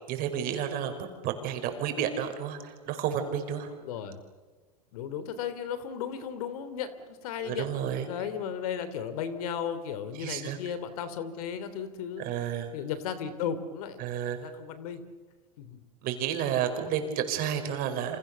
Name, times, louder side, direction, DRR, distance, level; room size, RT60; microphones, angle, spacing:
voice 1, 0.1-3.7 7.4-8.1 10.2-10.6 12.2-12.7 14.0-14.5 16.0-18.2, right 9 dB, 45° right, 6 dB, 5.3 m, -31 dB
voice 2, 3.8-4.2 4.9-7.7 8.1-12.3 12.7-14.0 14.4-15.1 15.6-15.8, left 8 dB, 70° left, 12 dB, 3.2 m, -35 dB
29.5 x 27.0 x 7.0 m, 1.4 s
hypercardioid pair, 115°, 20 cm